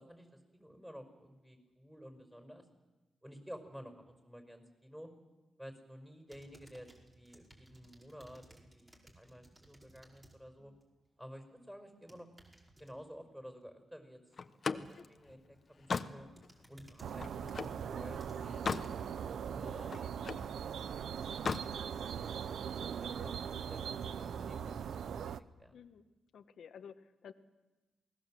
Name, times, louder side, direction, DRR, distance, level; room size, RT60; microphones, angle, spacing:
voice 1, 0.0-2.7 3.2-5.1 5.6-8.9 9.2-10.7 11.2-12.3 12.8-14.4 14.7-16.3 16.7-19.1 19.4-22.6 23.0-25.3 25.6-25.7, equal, 5° right, 6 dB, 5.6 m, -52 dB
sound 1, 6.3-10.4 10.8-11.1 11.9-12.9 15.3-15.7 16.0-19.2 19.8-19.9, right 1 dB, 25° right, 5.0 m, -61 dB
Slam, 14.4-17.8 18.3-19.0 19.3-20.5 21.3-21.7, left 5 dB, 50° left, 1.1 m, -38 dB
sound 2, 17.0-25.4, right 8 dB, 80° right, 0.7 m, -40 dB
voice 2, 25.7-26.1 26.3-27.3, left 7 dB, 75° left, 10 dB, 1.3 m, -53 dB
28.0 x 19.5 x 7.7 m, 1.1 s
cardioid pair, 75°, 0 cm